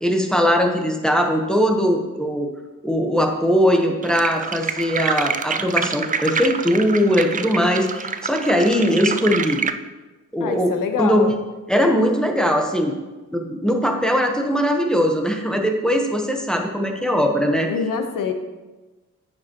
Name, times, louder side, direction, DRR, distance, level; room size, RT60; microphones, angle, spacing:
voice 1, 0.0-2.5 2.8-9.6 10.3-10.7 11.0-11.3 11.7-12.9 13.3-17.7, equal, ahead, 2 dB, 0.9 m, -20 dB
sound 1, 4.0-9.7, right 6 dB, 25° right, 0.3 m, -27 dB
voice 2, 10.4-11.3 17.7-18.3, left 5 dB, 85° left, 6 dB, 0.9 m, -25 dB
9.3 x 6.7 x 3.0 m, 1.2 s
cardioid pair, 100°, 32 cm